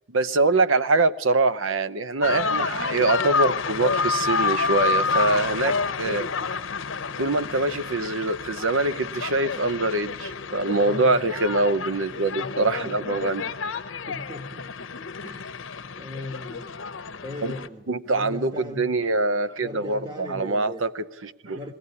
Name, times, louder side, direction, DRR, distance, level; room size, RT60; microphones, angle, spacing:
voice 1, 0.1-6.3 7.2-13.4 17.4-17.5 17.9-21.6, right 3 dB, 80° right, 14 dB, 0.7 m, -24 dB
sound 1, 2.2-17.7, left 5 dB, 80° left, 0.8 m, -29 dB
voice 2, 10.7-11.5 12.4-13.2 13.6-14.7 15.2-15.6 15.9-16.7 17.2-18.9 19.6-20.8 21.5-21.7, left 1 dB, 20° right, 4 dB, 1.3 m, -39 dB
20.5 x 16.0 x 9.7 m, 1.2 s
head